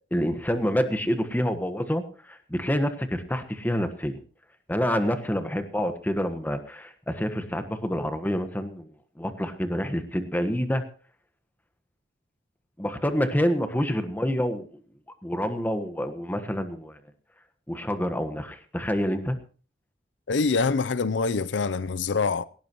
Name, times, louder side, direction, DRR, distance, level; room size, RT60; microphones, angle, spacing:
voice 1, 0.1-4.2 4.7-8.9 9.2-10.8 12.8-14.8 15.2-17.0 17.7-19.4, equal, 10° left, 1.4 m, -27 dB
voice 2, 20.3-22.4, left 4 dB, 85° left, 0.6 m, -25 dB
18.0 x 17.5 x 3.0 m
head